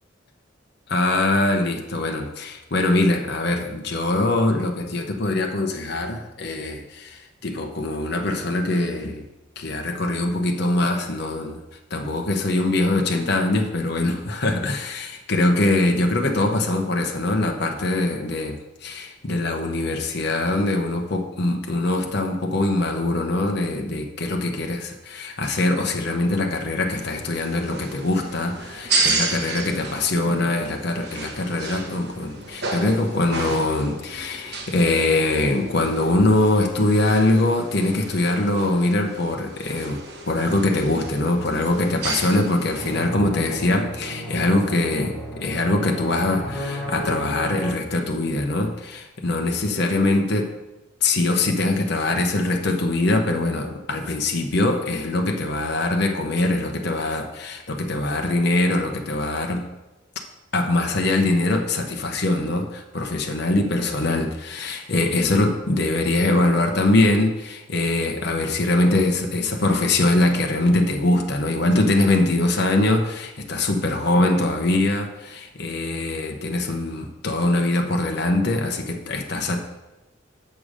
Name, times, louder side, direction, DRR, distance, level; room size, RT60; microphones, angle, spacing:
voice 1, 0.9-9.3 9.6-11.6 11.9-50.5 51.0-59.6 60.5-79.6, left 2 dB, 55° left, 3 dB, 0.8 m, -22 dB
sound 1, 26.9-43.1, right 3 dB, 55° right, 1.2 m, -32 dB
sound 2, 42.7-47.7, equal, 5° left, 3.1 m, -33 dB
7.0 x 6.3 x 5.0 m, 1.0 s
head